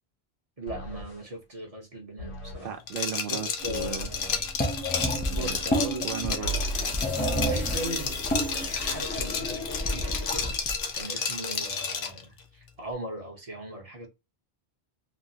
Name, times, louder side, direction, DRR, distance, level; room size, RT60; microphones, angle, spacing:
voice 1, 0.6-2.8 3.3-4.4 5.3-6.6 6.9-7.0 7.5-8.2 8.5-10.6 10.9-14.1, right 1 dB, 35° right, 0.9 m, -39 dB
sound 1, 0.7-1.2 2.2-2.7 3.7-4.2 5.2-5.8 6.4-10.8, equal, 80° left, 1.4 m, -37 dB
voice 2, 2.6-4.1 6.0-6.5, right 7 dB, 60° right, 0.7 m, -35 dB
Liquid, 2.9-12.2, left 5 dB, 60° left, 0.8 m, -32 dB
sound 2, 3.6-10.8, equal, 10° left, 0.5 m, -31 dB
3.1 x 2.5 x 2.7 m
omnidirectional pair, 1.1 m